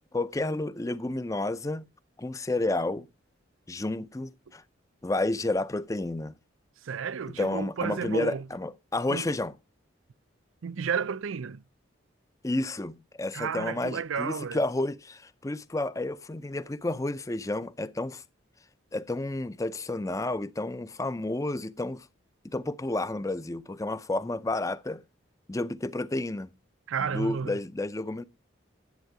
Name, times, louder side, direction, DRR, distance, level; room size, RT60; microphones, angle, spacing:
voice 1, 0.1-1.8 2.2-3.1 3.7-4.6 5.0-6.3 7.4-9.5 12.4-18.2 18.9-22.1 22.4-25.0 25.5-26.5 27.0-28.2, left 2 dB, 15° left, 0.5 m, -31 dB
voice 2, 6.8-8.5 9.1-9.3 10.6-11.6 13.3-14.6 26.9-27.6, right 6 dB, 85° right, 0.5 m, -32 dB
10.5 x 8.1 x 4.7 m
head